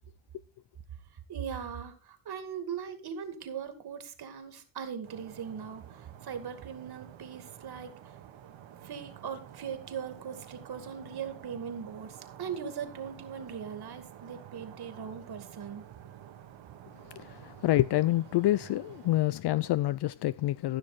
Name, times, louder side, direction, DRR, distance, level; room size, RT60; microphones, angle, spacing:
voice 1, 1.3-8.2 8.8-15.9, right 7 dB, 55° right, 2.4 m, -40 dB
sound 1, 5.0-19.2, right 10 dB, 80° right, 1.7 m, -50 dB
voice 2, 17.1-20.8, left 15 dB, 60° left, 0.5 m, -27 dB
14.5 x 6.4 x 4.4 m
cardioid pair, 105°, 46 cm